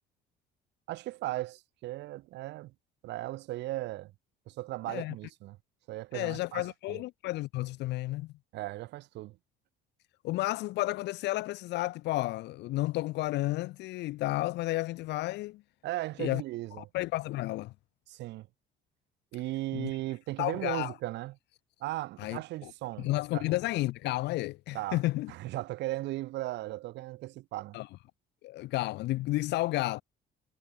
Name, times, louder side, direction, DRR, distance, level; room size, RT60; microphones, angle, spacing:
voice 1, 0.9-2.7 3.0-4.1 4.5-5.6 5.9-7.0 8.5-9.4 15.8-16.9 18.1-18.5 19.3-21.4 21.8-23.1 23.3-23.5 24.7-25.0 25.3-27.8, right 17 dB, 70° right, 1.0 m, -37 dB
voice 2, 6.1-8.3 10.2-15.6 16.2-16.4 16.8-17.7 19.7-19.9 20.4-20.9 22.2-22.7 23.0-25.3 27.7-27.9 28.4-30.0, left 18 dB, 65° left, 0.5 m, -32 dB
cardioid pair, 145°, 19 cm